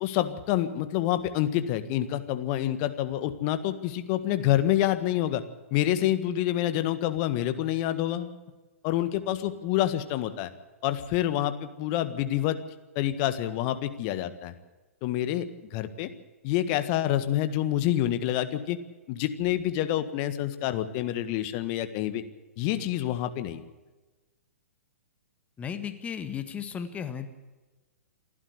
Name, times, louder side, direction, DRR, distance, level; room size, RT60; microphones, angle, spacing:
voice 1, 0.0-5.4 5.7-8.3 8.8-10.5 10.8-12.6 12.9-14.5 15.0-15.5 15.7-16.1 16.4-18.8 19.1-22.2 22.6-23.6, left 12 dB, 35° left, 10 dB, 1.6 m, -27 dB
voice 2, 25.6-27.3, left 7 dB, 15° left, 9 dB, 1.6 m, -35 dB
29.0 x 12.0 x 8.0 m, 1.2 s
figure-of-eight pair, 115°, 8 cm